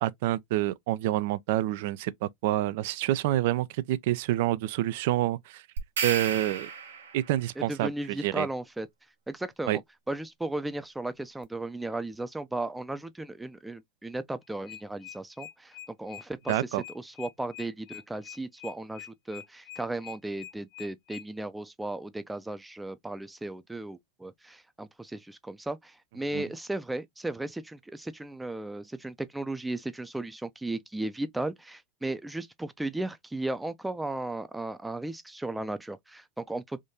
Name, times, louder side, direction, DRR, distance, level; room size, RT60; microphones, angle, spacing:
voice 1, 0.0-5.6 6.0-6.7 7.1-8.5 9.7-9.8 16.5-16.8 26.3-26.4, right 15 dB, 65° right, 0.3 m, -28 dB
sound 1, 5.8-7.3, right 6 dB, 85° right, 1.1 m, -33 dB
voice 2, 7.6-8.9 9.3-9.8 10.1-16.5 16.9-36.8, right 2 dB, 5° right, 0.5 m, -35 dB
sound 2, 14.4-21.2, left 12 dB, 50° left, 1.0 m, -45 dB
3.5 x 2.6 x 2.7 m
hypercardioid pair, 95°, 0 cm